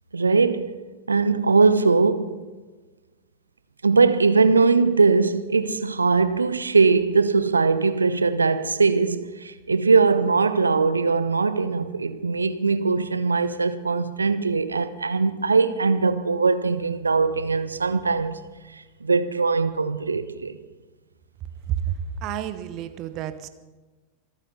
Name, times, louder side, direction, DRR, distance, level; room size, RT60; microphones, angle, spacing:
voice 1, 0.1-0.7 1.1-2.4 3.8-18.4 18.7-20.6, right 4 dB, 75° right, 1.0 m, -21 dB
voice 2, 21.7-23.5, right 10 dB, 40° right, 1.2 m, -30 dB
25.5 x 9.0 x 5.7 m
figure-of-eight pair, 90°, 0 cm